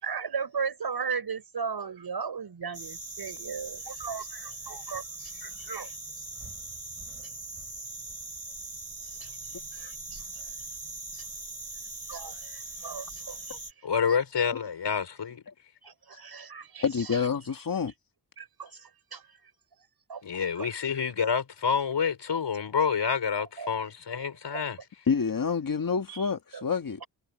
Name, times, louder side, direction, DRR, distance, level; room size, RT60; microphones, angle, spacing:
voice 1, 0.0-5.9 9.0-10.5 11.1-11.3 12.1-13.8 15.8-17.3 18.4-19.5 20.1-20.2 20.5-20.7 23.3-23.7 24.5-24.6 26.1-26.6, right 6 dB, 65° right, 6.4 m, -37 dB
sound 1, 2.7-13.7, right 3 dB, 35° right, 4.3 m, -41 dB
voice 2, 13.8-15.4 20.2-24.8, left 6 dB, 90° left, 5.7 m, -28 dB
voice 3, 16.8-17.9 25.1-27.0, left 6 dB, 55° left, 1.7 m, -28 dB
wide cardioid pair, 130°, 41 cm